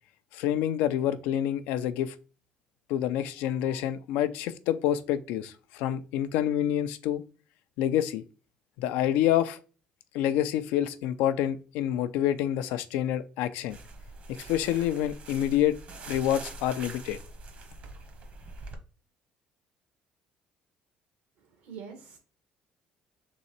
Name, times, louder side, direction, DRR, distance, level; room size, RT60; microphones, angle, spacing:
voice 1, 0.3-2.1 2.9-7.2 7.8-8.2 8.8-9.6 10.1-13.8 14.3-15.8 16.1-17.2, left 11 dB, 85° left, 0.5 m, -27 dB
sound 1, 13.7-18.7, right 3 dB, 50° right, 1.1 m, -44 dB
voice 2, 21.4-22.2, right 6 dB, 80° right, 1.7 m, -45 dB
3.8 x 3.0 x 4.3 m
cardioid pair, 100°, 3 cm